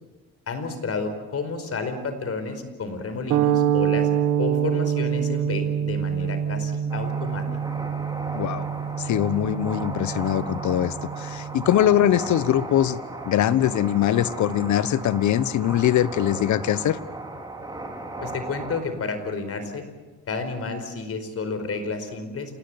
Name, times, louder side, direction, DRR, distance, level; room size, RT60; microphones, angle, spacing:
voice 1, 0.5-4.1 4.4-7.4 18.2-19.8 20.3-22.6, left 4 dB, 50° left, 9 dB, 4.8 m, -31 dB
sound 1, 3.3-11.7, right 9 dB, 90° right, 1.3 m, -26 dB
sound 2, 6.9-18.8, right 2 dB, 15° right, 4.4 m, -36 dB
voice 2, 8.3-8.7 9.0-13.0 13.3-17.0, left 11 dB, 70° left, 17 dB, 1.1 m, -22 dB
27.5 x 19.5 x 8.1 m, 1.2 s
cardioid pair, 90°, 30 cm